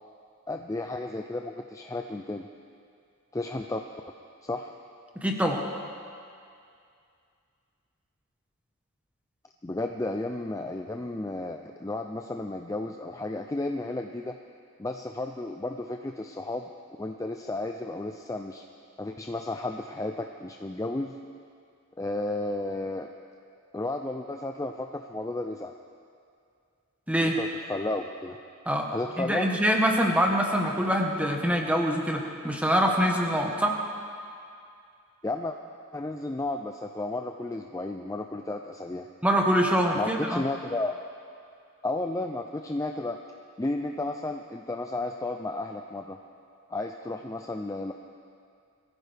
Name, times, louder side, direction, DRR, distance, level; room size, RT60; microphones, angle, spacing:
voice 1, 0.5-2.5 3.3-4.0 4.4-4.7 9.6-14.4 14.8-16.7 17.0-18.6 19.0-21.2 22.0-23.1 23.7-25.7 27.2-28.4 28.9-29.5 35.2-35.6 35.9-39.1 39.9-40.9 41.8-43.2 43.6-46.2 46.7-47.9, left 2 dB, 15° left, 4 dB, 0.4 m, -33 dB
voice 2, 5.2-5.6 27.1-27.4 28.7-28.9 29.2-33.8 39.2-40.4, equal, 5° right, 1 dB, 1.2 m, -24 dB
22.5 x 15.0 x 3.4 m, 2.4 s
head